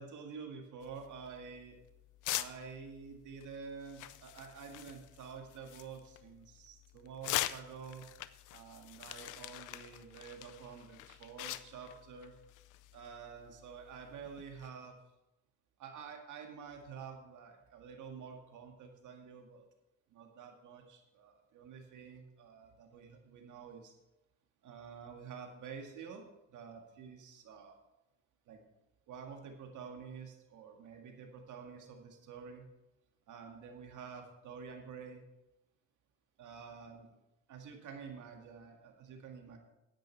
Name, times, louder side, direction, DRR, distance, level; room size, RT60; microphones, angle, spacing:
voice 1, 0.0-1.8 2.3-8.1 8.5-12.3 12.9-15.0 15.8-19.7 20.1-23.9 24.6-26.2 26.5-27.8 28.5-28.6 29.1-32.7 33.3-35.2 36.4-37.2 37.5-39.6, right 6 dB, 80° right, 3 dB, 2.0 m, -49 dB
sound 1, 0.8-14.7, left 14 dB, 85° left, 0.6 m, -44 dB
10.0 x 9.1 x 4.5 m, 0.92 s
cardioid pair, 90°, 30 cm